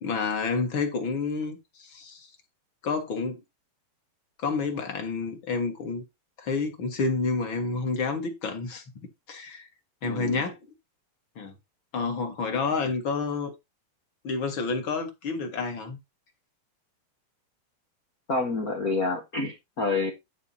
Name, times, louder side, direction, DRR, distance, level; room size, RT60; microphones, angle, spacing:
voice 1, 0.0-2.3 2.8-3.4 4.4-6.0 6.4-8.8 9.3-9.7 10.0-10.6 11.4-11.5 11.9-13.5 14.2-16.0, left 4 dB, 40° left, 2.0 m, -29 dB
voice 2, 10.0-10.4 18.3-20.1, left 3 dB, 75° left, 0.8 m, -28 dB
11.0 x 4.7 x 4.2 m
omnidirectional pair, 4.2 m